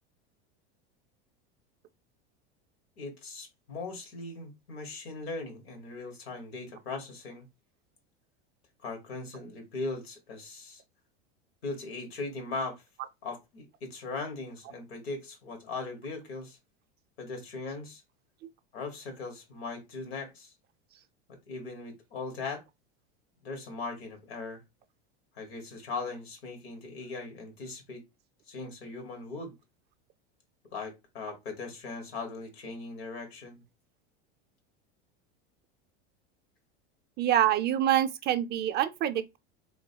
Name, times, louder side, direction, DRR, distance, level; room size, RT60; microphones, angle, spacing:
voice 1, 3.0-7.4 8.8-10.8 11.6-12.8 13.2-16.6 17.2-18.0 18.7-20.5 21.3-22.6 23.4-24.6 25.3-28.1 28.5-29.5 30.7-33.6, left 3 dB, 85° left, 1.6 m, -39 dB
voice 2, 37.2-39.4, right 11 dB, 35° right, 0.4 m, -26 dB
3.2 x 3.1 x 2.7 m
supercardioid pair, 105°, 31 cm